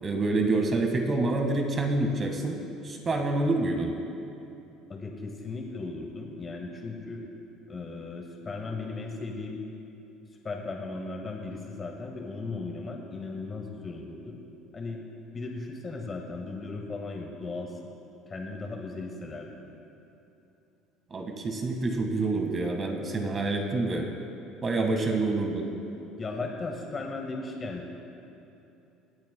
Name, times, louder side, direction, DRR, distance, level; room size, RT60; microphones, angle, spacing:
voice 1, 0.0-2.6 2.8-3.9 21.1-24.1 24.6-25.7, right 2 dB, 35° right, 3 dB, 1.7 m, -27 dB
voice 2, 4.9-7.3 7.7-9.6 10.4-14.4 14.7-15.0 15.3-17.9 18.3-19.6 26.2-27.9, left 3 dB, 30° left, 1 dB, 1.6 m, -36 dB
24.0 x 8.6 x 2.3 m, 2.9 s
hypercardioid pair, 70°, 0 cm